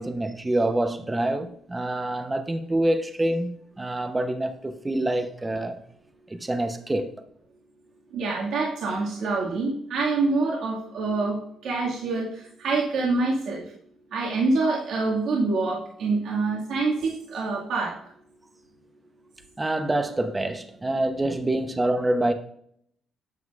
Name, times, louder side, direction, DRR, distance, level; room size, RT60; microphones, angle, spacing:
voice 1, 0.0-3.5 3.8-5.8 6.3-7.1 19.6-22.3, right 1 dB, 20° right, 0.9 m, -26 dB
voice 2, 8.1-13.6 14.1-18.0, right 3 dB, 75° right, 2.1 m, -26 dB
9.5 x 7.3 x 2.5 m
cardioid pair, 90°, 0 cm